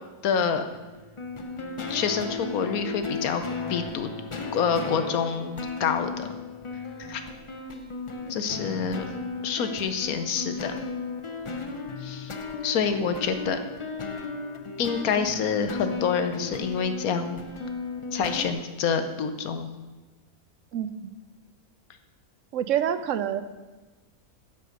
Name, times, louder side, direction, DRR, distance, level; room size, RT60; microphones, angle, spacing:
voice 1, 0.2-0.6 1.9-3.4 3.7-4.1 4.5-6.3 7.1-7.2 8.3-9.0 9.4-10.8 12.0-12.3 12.6-13.6 14.8-17.4 18.1-19.7, left 6 dB, 75° left, 8 dB, 1.2 m, -27 dB
sound 1, 0.8-18.5, left 4 dB, 45° left, 0.4 m, -35 dB
voice 2, 20.7-21.1 22.5-23.4, right 10 dB, 70° right, 12 dB, 0.9 m, -27 dB
10.5 x 5.5 x 6.5 m, 1.2 s
omnidirectional pair, 1.5 m